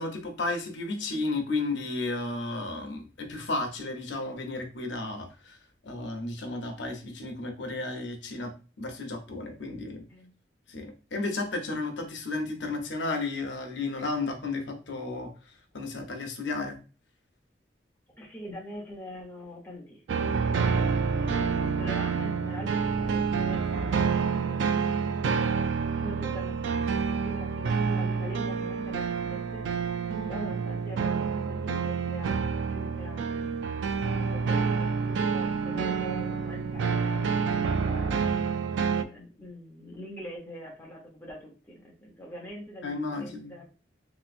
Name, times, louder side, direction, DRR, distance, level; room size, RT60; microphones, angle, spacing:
voice 1, 0.0-5.6 5.8-10.0 10.7-15.3 15.7-16.8 42.8-43.5, left 3 dB, 80° left, 4 dB, 0.7 m, -33 dB
voice 2, 18.2-32.4 32.7-38.5 38.9-43.7, equal, 10° left, -2 dB, 0.9 m, -44 dB
sound 1, 20.1-39.0, right 5 dB, 80° right, 0.3 m, -28 dB
3.2 x 2.9 x 2.5 m, 0.34 s
head